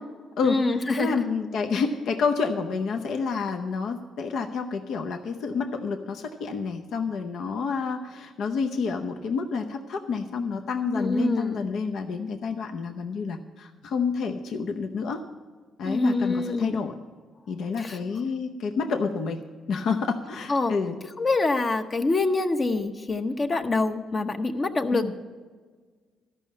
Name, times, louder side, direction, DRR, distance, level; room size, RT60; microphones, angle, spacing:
voice 1, 0.4-1.1 10.9-11.6 15.8-16.8 17.8-18.0 20.5-20.7 21.2-25.2, left 2 dB, 35° left, 7 dB, 0.8 m, -25 dB
voice 2, 1.0-15.2 15.8-16.9 17.5-19.4 19.7-21.0 24.9-25.1, left 5 dB, 70° left, 5 dB, 0.7 m, -29 dB
13.0 x 5.6 x 8.3 m, 1.5 s
cardioid pair, 90°, 0 cm